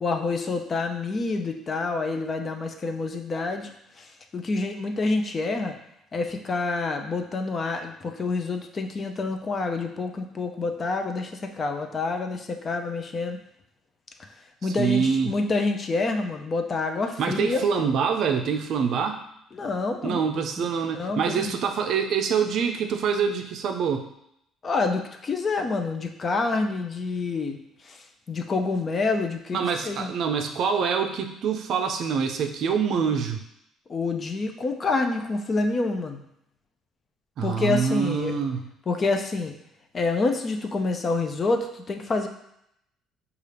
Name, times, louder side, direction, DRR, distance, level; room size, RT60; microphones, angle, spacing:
voice 1, 0.0-3.7 4.0-4.1 4.3-5.8 6.1-13.4 14.6-17.6 19.5-20.2 20.6-20.7 21.0-21.6 24.6-27.6 27.9-28.0 28.3-30.1 33.9-36.2 37.4-38.3 38.9-39.5 39.9-42.3, left 3 dB, 30° left, 5 dB, 0.4 m, -27 dB
voice 2, 14.8-15.3 17.2-19.2 20.0-24.1 29.5-33.4 37.4-38.6, right 6 dB, 60° right, 5 dB, 0.5 m, -25 dB
5.4 x 2.4 x 3.3 m, 0.77 s
cardioid pair, 120°, 0 cm